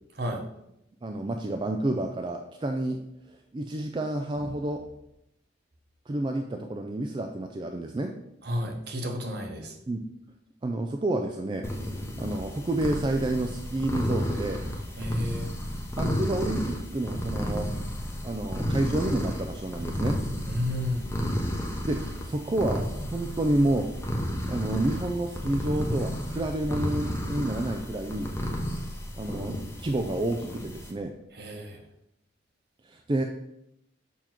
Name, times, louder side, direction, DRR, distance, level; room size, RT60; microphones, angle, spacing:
voice 1, 1.0-3.0 3.5-4.8 6.1-8.1 9.9-10.0 10.6-11.6 12.2-14.6 16.0-17.7 18.2-20.2 21.9-23.9 24.5-28.3 29.2-29.6 29.8-31.1 32.9-33.2, right 1 dB, 25° right, 4 dB, 0.3 m, -29 dB
voice 2, 8.4-9.7 15.0-15.5 20.5-21.1 31.3-31.8, left 1 dB, 55° right, 3 dB, 1.1 m, -31 dB
sound 1, 11.6-30.9, equal, 15° left, 0.8 m, -32 dB
6.9 x 2.9 x 5.9 m, 0.82 s
head